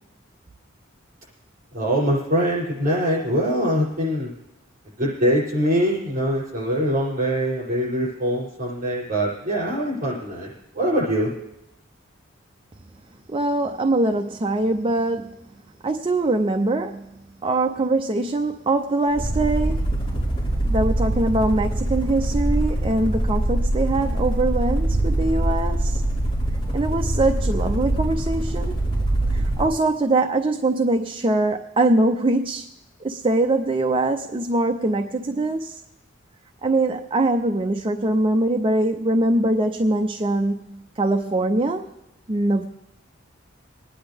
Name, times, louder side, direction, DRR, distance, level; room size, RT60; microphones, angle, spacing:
voice 1, 1.7-4.3 5.0-11.3, equal, 45° right, -7 dB, 7.1 m, -23 dB
voice 2, 13.3-15.4 15.8-17.1 17.4-19.8 20.7-26.0 26.7-28.8 29.3-32.6 33.0-35.8 36.6-41.9 42.3-42.7, right 2 dB, 25° right, 5 dB, 0.5 m, -22 dB
sound 1, 19.1-29.7, right 1 dB, 35° left, 4.9 m, -23 dB
23.5 x 10.0 x 3.5 m, 0.85 s
head